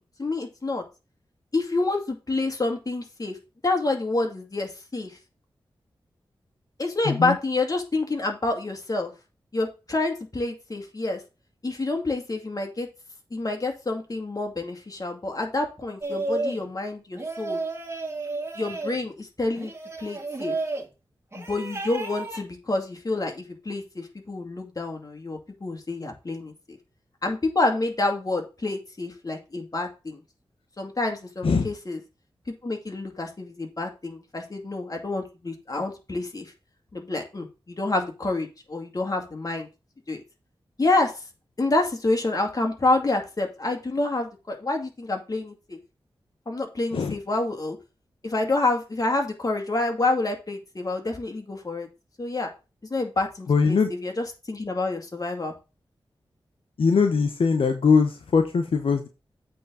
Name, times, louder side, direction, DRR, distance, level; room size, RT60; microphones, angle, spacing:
voice 1, 0.2-0.8 1.5-3.4 3.6-5.2 6.8-9.1 9.5-11.2 11.6-12.9 13.3-17.6 18.6-19.7 20.0-20.6 21.3-26.8 27.2-30.2 30.8-32.0 32.6-36.5 36.9-39.7 40.1-40.2 40.8-41.2 41.6-45.8 46.5-47.8 48.2-51.9 52.2-52.5 52.9-55.5, left 2 dB, 40° left, 3 dB, 2.4 m, -28 dB
voice 2, 7.0-7.4 31.4-31.7 46.9-47.1 53.5-53.9 56.8-59.1, left 5 dB, 80° left, 6 dB, 0.9 m, -21 dB
sound 1, 16.0-16.6 17.1-19.0 19.6-20.8 21.3-22.4, right 2 dB, 25° right, 1.9 m, -32 dB
8.4 x 4.0 x 6.9 m, 0.29 s
cardioid pair, 60°, 9 cm